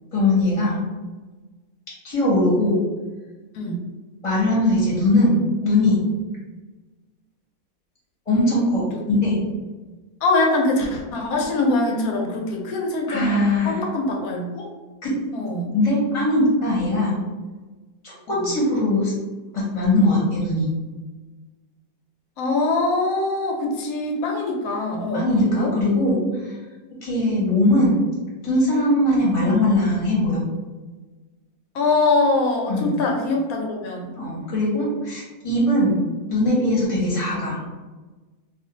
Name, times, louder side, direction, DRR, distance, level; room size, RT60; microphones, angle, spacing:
voice 1, 0.1-0.8 2.0-2.8 4.2-6.0 8.3-9.4 13.1-13.8 15.0-15.1 15.7-17.1 18.0-19.1 19.5-20.7 25.1-26.6 27.0-28.0 28.4-30.4 32.7-32.9 34.2-36.0 36.3-37.6, left 1 dB, 30° left, -6 dB, 0.8 m, -20 dB
voice 2, 10.2-14.7 15.3-15.7 18.4-18.5 22.4-25.7 31.7-34.1, left 2 dB, 75° left, 1 dB, 1.0 m, -23 dB
2.5 x 2.4 x 3.8 m, 1.3 s
omnidirectional pair, 1.6 m